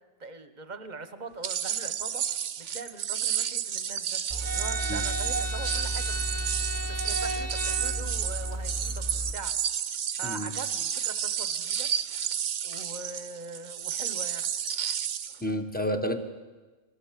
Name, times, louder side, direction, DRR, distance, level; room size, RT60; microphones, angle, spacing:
voice 1, 0.2-2.2 2.6-4.2 4.5-6.2 6.9-9.0 9.3-9.5 10.2-12.3 12.6-14.5, right 3 dB, 40° right, 10 dB, 1.2 m, -42 dB
sound 1, 1.4-15.4, right 9 dB, 90° right, 1.1 m, -31 dB
sound 2, 4.3-9.3, right 1 dB, 15° right, 1.1 m, -32 dB
voice 2, 15.4-16.2, equal, 10° left, 6 dB, 1.3 m, -30 dB
22.0 x 16.5 x 7.5 m, 1.3 s
omnidirectional pair, 1.2 m